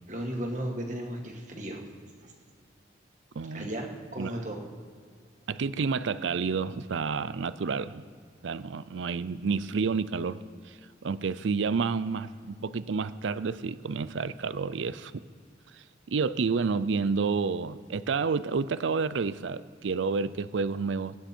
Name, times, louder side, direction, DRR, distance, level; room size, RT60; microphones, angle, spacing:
voice 1, 0.1-1.8 2.2-2.3 3.5-4.6, right 1 dB, 40° right, 1 dB, 2.0 m, -35 dB
voice 2, 3.4-3.7 4.2-4.3 5.5-8.0 8.4-10.7 11.0-15.1 16.1-21.2, right 5 dB, 80° right, 15 dB, 0.5 m, -29 dB
23.0 x 9.4 x 4.5 m, 2.1 s
head